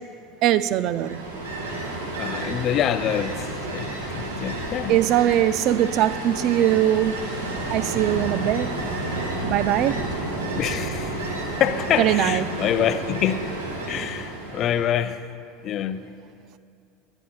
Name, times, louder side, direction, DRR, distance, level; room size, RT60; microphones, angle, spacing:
voice 1, 0.4-1.2 4.9-7.2 7.7-8.7 9.4-10.0 12.0-12.5, right 12 dB, 55° right, 0.3 m, -21 dB
Ocean, 0.9-15.0, right 2 dB, 80° right, 1.3 m, -31 dB
voice 2, 2.2-5.0 10.5-13.5 13.9-15.2 15.6-16.1, left 10 dB, 45° left, 0.5 m, -26 dB
22.0 x 9.8 x 2.3 m
hypercardioid pair, 75°, 0 cm